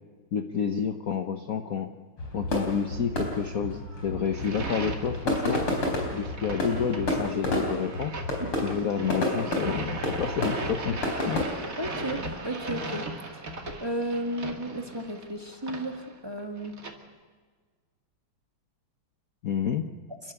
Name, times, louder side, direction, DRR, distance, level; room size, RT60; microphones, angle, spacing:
voice 1, 0.3-1.9 2.3-5.6 6.1-8.2 8.6-11.0 11.2-11.4 19.4-19.9, left 7 dB, 50° left, 7 dB, 1.2 m, -29 dB
sound 1, 2.2-11.4, left 1 dB, 75° left, 5.0 m, -31 dB
sound 2, 4.3-16.9, right 2 dB, 40° right, 2.7 m, -38 dB
voice 2, 11.8-13.1 13.8-16.7, right 1 dB, 10° right, 5 dB, 1.7 m, -33 dB
30.0 x 12.5 x 8.3 m, 1.5 s
omnidirectional pair, 2.4 m